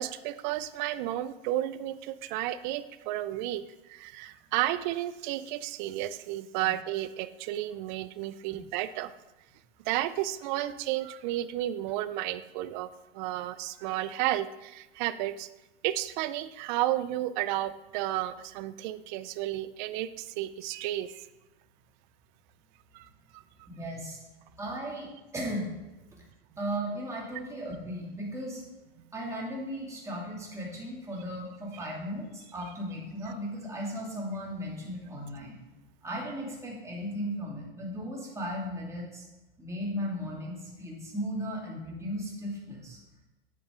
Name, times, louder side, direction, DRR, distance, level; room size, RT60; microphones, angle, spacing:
voice 1, 0.0-3.6 3.9-9.1 9.9-15.5 15.8-21.3 22.9-23.1 23.3-23.4, right 14 dB, 50° right, 15 dB, 0.6 m, -32 dB
voice 2, 23.7-24.2 24.6-25.7 26.6-28.6 29.1-35.6 36.0-39.3 39.6-43.0, equal, 10° right, -3 dB, 2.7 m, -36 dB
9.6 x 8.3 x 3.8 m, 1.0 s
hypercardioid pair, 115°, 30 cm